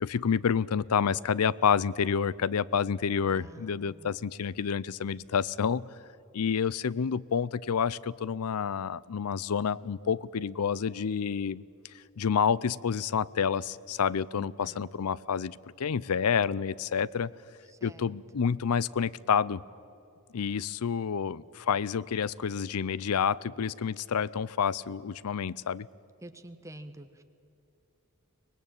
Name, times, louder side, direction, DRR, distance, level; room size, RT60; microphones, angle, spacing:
voice 1, 0.0-5.9 6.3-11.6 11.9-17.3 17.8-19.6 20.3-25.9, left 7 dB, 85° left, 22 dB, 0.5 m, -29 dB
voice 2, 3.2-4.1 14.3-14.8 17.8-18.1 26.2-27.2, right 1 dB, 15° right, 8 dB, 1.2 m, -48 dB
24.5 x 19.0 x 8.9 m, 2.7 s
head